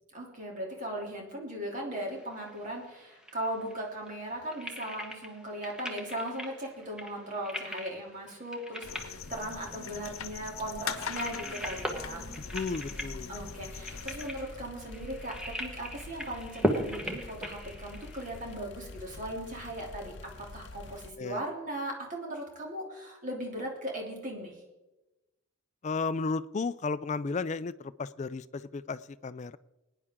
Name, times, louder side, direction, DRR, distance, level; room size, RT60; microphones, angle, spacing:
voice 1, 0.1-12.3 13.3-20.1 20.4-24.6, right 1 dB, 40° right, -1 dB, 2.9 m, -38 dB
sound 1, 1.9-18.5, equal, 5° right, 1.2 m, -39 dB
sound 2, 8.8-14.3, left 6 dB, 85° left, 0.9 m, -41 dB
sound 3, 11.6-21.1, left 2 dB, 55° left, 0.7 m, -47 dB
voice 2, 12.5-13.3 21.2-21.4 25.8-29.6, left 4 dB, 35° left, 15 dB, 0.4 m, -34 dB
20.5 x 10.0 x 3.7 m, 1.0 s
head